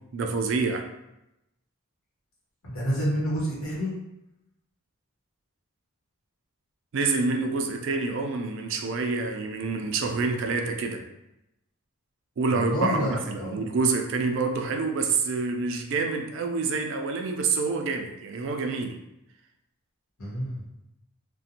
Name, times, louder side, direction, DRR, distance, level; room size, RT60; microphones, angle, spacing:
voice 1, 0.1-0.8 6.9-11.0 12.4-19.0, right 4 dB, 60° right, 4 dB, 0.3 m, -27 dB
voice 2, 2.6-4.0 12.5-13.6 20.2-20.6, equal, 75° left, -6 dB, 1.0 m, -29 dB
2.5 x 2.1 x 2.7 m, 0.89 s
head